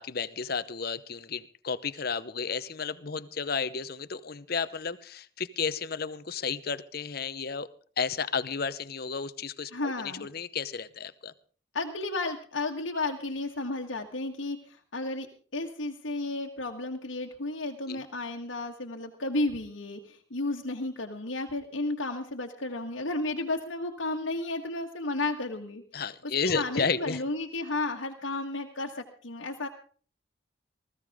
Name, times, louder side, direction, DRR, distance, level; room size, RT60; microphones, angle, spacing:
voice 1, 0.0-7.7 8.0-11.3 17.9-18.0 25.9-27.2, left 5 dB, 50° left, 14 dB, 0.9 m, -32 dB
voice 2, 9.7-10.3 11.7-15.3 15.5-29.7, left 2 dB, 85° left, 1 dB, 1.6 m, -33 dB
20.0 x 15.0 x 3.6 m, 0.43 s
head